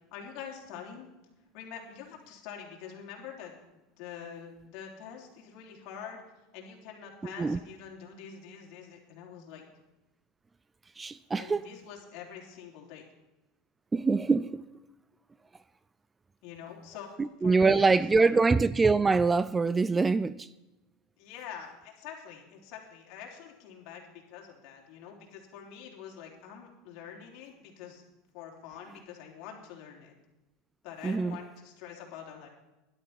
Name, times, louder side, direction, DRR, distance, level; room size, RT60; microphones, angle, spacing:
voice 1, 0.1-1.1 1.5-3.5 4.0-6.2 6.5-9.6 11.4-13.1 16.4-17.1 17.4-18.4 21.2-28.0 28.3-30.1 30.8-32.5, left 8 dB, 55° left, 3.8 m, -45 dB
voice 2, 11.0-11.6 13.9-14.6 17.2-20.5 31.0-31.4, right 4 dB, 15° right, 0.3 m, -24 dB
12.5 x 11.5 x 5.9 m
supercardioid pair, 140°, 0 cm